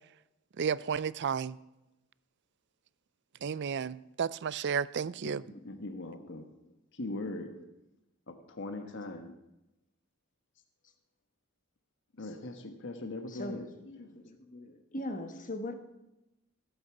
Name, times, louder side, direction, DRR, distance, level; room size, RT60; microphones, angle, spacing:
voice 1, 0.6-1.6 3.4-5.4, right 6 dB, 55° right, 19 dB, 0.4 m, -32 dB
voice 2, 5.6-6.5 6.9-7.5 8.3-9.3 12.2-14.2, left 2 dB, 60° left, 7 dB, 1.3 m, -40 dB
voice 3, 7.3-7.6 8.7-9.3 13.3-13.6 14.0-15.7, left 1 dB, 40° left, 6 dB, 1.5 m, -41 dB
16.0 x 8.1 x 7.2 m, 0.92 s
head